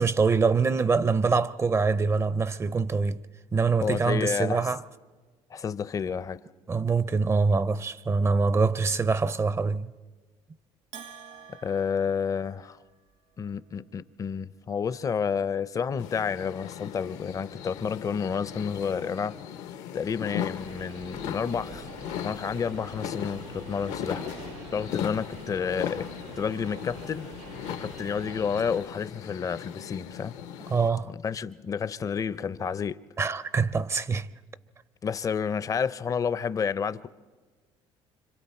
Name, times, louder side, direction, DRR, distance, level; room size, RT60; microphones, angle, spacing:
voice 1, 0.0-3.2 3.5-4.8 6.7-9.9 30.7-31.1 33.2-34.3, right 4 dB, 25° right, 0.5 m, -24 dB
voice 2, 3.8-4.7 5.5-6.4 11.6-12.8 13.4-19.4 19.9-21.9 22.2-24.3 24.7-26.1 26.4-27.3 27.7-30.4 31.0-33.0 35.0-37.1, left 6 dB, 30° left, 0.5 m, -30 dB
Bell, 10.9-13.1, right 7 dB, 65° right, 1.0 m, -48 dB
sound 1, 16.0-30.9, left 10 dB, 80° left, 0.9 m, -38 dB
sound 2, 20.6-28.8, right 3 dB, 85° right, 7.1 m, -44 dB
26.5 x 25.0 x 4.3 m
cardioid pair, 100°, 11 cm